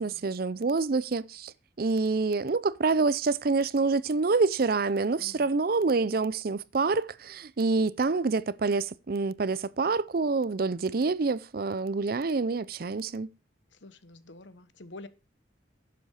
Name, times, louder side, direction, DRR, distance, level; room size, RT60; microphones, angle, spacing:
voice 1, 0.0-1.5 1.8-13.3, right 4 dB, 50° right, 0.5 m, -27 dB
voice 2, 5.2-5.5 13.7-15.1, left 2 dB, 70° left, 1.2 m, -48 dB
11.5 x 7.9 x 4.8 m
head